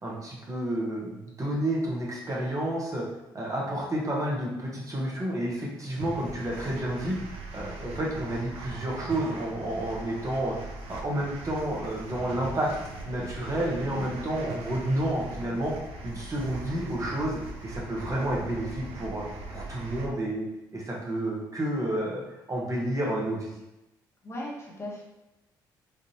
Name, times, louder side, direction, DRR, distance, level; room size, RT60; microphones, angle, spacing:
voice 1, 0.0-3.0 3.3-7.2 7.5-10.6 10.9-12.7 13.1-15.7 16.0-19.2 19.5-20.5 20.7-22.2 22.5-23.5, right 1 dB, 35° right, -3 dB, 1.0 m, -30 dB
sound 1, 6.0-20.1, right 2 dB, 70° right, 0.6 m, -40 dB
voice 2, 13.9-14.3 24.2-25.0, left 1 dB, 30° left, -4 dB, 1.2 m, -38 dB
3.4 x 2.5 x 2.8 m, 0.95 s
hypercardioid pair, 55°, 10 cm